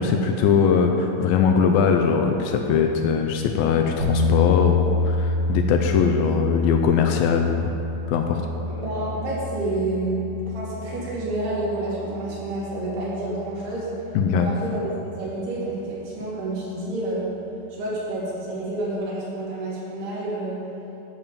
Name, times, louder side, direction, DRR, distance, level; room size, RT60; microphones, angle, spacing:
voice 1, 0.0-7.7 8.1-8.4 14.2-14.5, left 6 dB, 80° left, 4 dB, 2.2 m, -21 dB
sound 1, 4.0-14.0, left 3 dB, 55° right, 2.2 m, -28 dB
voice 2, 8.7-13.9 14.3-14.9 15.2-17.2 17.7-20.6, right 2 dB, 85° right, -7 dB, 4.4 m, -29 dB
11.0 x 7.2 x 5.2 m, 2.9 s
omnidirectional pair, 4.5 m